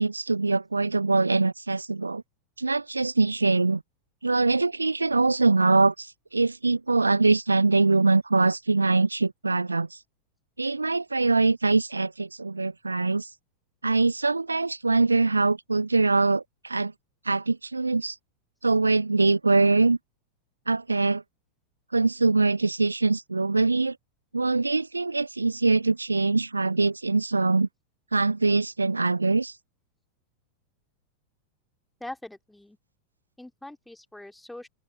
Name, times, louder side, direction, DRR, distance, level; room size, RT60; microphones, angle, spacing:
voice 1, 0.0-2.2 2.6-3.8 4.2-6.1 6.3-9.9 10.6-13.3 13.8-16.9 17.3-18.1 18.6-20.0 20.7-21.2 21.9-24.0 24.3-27.7 28.1-29.5, right 3 dB, 80° right, 0.5 m, -23 dB
voice 2, 32.0-32.8 33.4-34.7, left 1 dB, 5° left, 3.2 m, -42 dB
open air
figure-of-eight pair, 90°, 0 cm